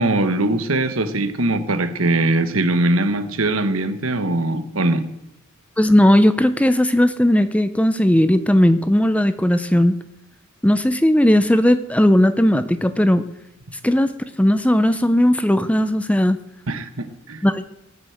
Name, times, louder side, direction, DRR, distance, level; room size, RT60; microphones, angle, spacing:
voice 1, 0.0-5.1 16.7-17.4, right 2 dB, 70° right, 10 dB, 1.3 m, -21 dB
voice 2, 5.8-9.9 10.6-13.2 13.8-14.1 14.4-16.4 17.4-17.6, left 1 dB, 5° left, 12 dB, 0.6 m, -16 dB
19.0 x 6.7 x 7.9 m, 0.86 s
head